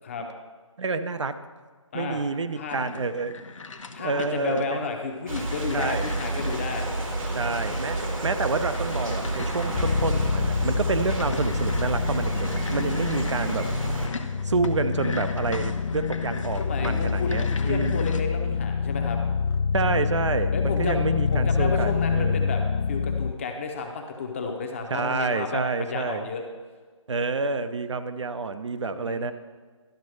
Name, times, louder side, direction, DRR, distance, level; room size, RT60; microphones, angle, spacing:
voice 1, 0.8-1.3 1.9-3.4 4.0-4.9 5.7-6.1 7.3-13.7 14.4-18.1 19.7-22.4 24.9-26.3 27.1-29.3, right 4 dB, 60° right, 10 dB, 0.6 m, -28 dB
sound 1, 2.7-18.2, left 4 dB, 70° left, 0.9 m, -39 dB
voice 2, 3.9-6.9 16.6-19.2 20.5-22.6 22.9-26.4 28.9-29.3, left 4 dB, 25° left, 3 dB, 0.7 m, -32 dB
sound 2, 5.3-14.1, right 2 dB, 85° right, 2.0 m, -30 dB
sound 3, 9.7-23.3, left 5 dB, 55° left, 0.4 m, -27 dB
11.5 x 4.2 x 6.3 m, 1.5 s
figure-of-eight pair, 160°, 17 cm